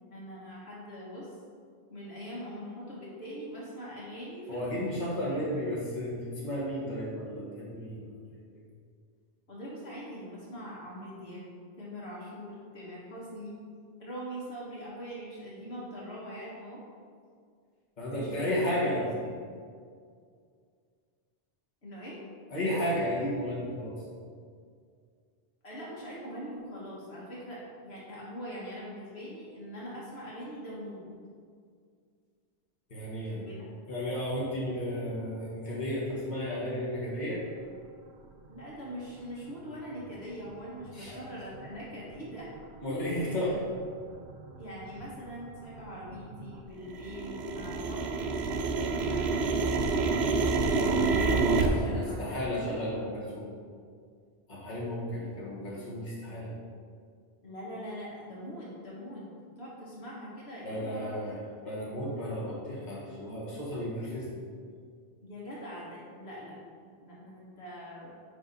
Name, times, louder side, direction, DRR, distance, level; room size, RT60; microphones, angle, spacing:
voice 1, 0.1-1.4 1.9-4.9 5.2-5.6 9.5-13.6 14.0-16.8 18.1-19.3 21.8-22.2 25.6-31.2 33.2-33.6 38.5-42.5 44.6-48.2 48.6-50.2 51.7-52.8 57.4-59.3 59.6-61.3 65.2-68.2, equal, 75° left, -6 dB, 1.7 m, -42 dB
voice 2, 4.5-8.6 18.0-19.0 22.5-24.0 32.9-33.4 33.9-37.4 40.9-41.2 42.8-43.6 51.5-53.5 54.5-56.5 60.6-61.4 61.6-64.4, equal, 45° left, -7 dB, 1.8 m, -33 dB
sound 1, 40.8-40.9 41.5-41.7 42.3-42.6 43.0-43.1 43.4-43.9 44.2-46.5 46.8-51.7, right 4 dB, 85° right, 0.9 m, -28 dB
10.0 x 3.4 x 4.1 m, 2.1 s
omnidirectional pair, 1.1 m